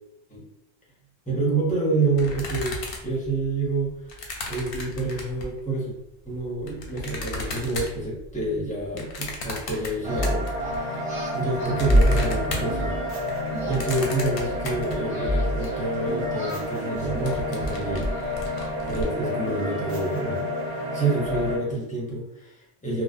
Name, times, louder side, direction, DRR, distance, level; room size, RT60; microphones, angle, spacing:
voice 1, 1.3-2.8 3.0-3.9 4.5-5.9 6.2-11.0 11.3-13.0 13.6-18.1 18.8-23.0, right 3 dB, 10° left, -5 dB, 0.4 m, -28 dB
sound 1, 2.1-5.6 6.2-10.8 11.1-15.7 16.1-16.2 16.3-16.6 17.0-19.1, left 2 dB, 65° left, 0.7 m, -35 dB
Singing, 10.0-13.0 13.5-16.0 16.3-18.9, right 2 dB, 20° right, 1.1 m, -43 dB
sound 2, 10.0-21.6, equal, 60° right, 0.8 m, -27 dB
2.6 x 2.0 x 2.3 m, 0.84 s
omnidirectional pair, 1.2 m